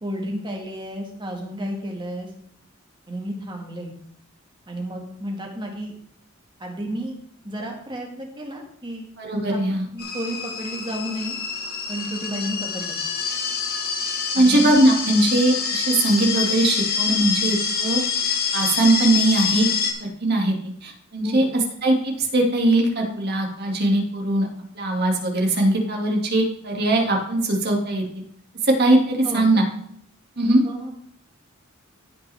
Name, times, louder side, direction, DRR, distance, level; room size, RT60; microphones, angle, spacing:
voice 1, 0.0-2.3 3.1-3.9 4.7-5.9 6.6-7.2 7.4-9.1 9.5-9.6 9.9-11.4 11.9-13.0 14.4-14.7 21.2-21.4 29.2-29.6 30.6-31.0, equal, 25° right, 0 dB, 1.9 m, -32 dB
voice 2, 9.2-9.9 14.3-18.0 18.5-19.7 20.0-20.6 20.8-21.5 21.8-24.5 24.7-28.2 28.6-29.6 30.4-30.6, right 1 dB, 50° right, 0 dB, 2.2 m, -20 dB
sound 1, 10.0-19.9, left 6 dB, 50° left, 1.4 m, -26 dB
16.0 x 5.7 x 3.5 m, 0.67 s
head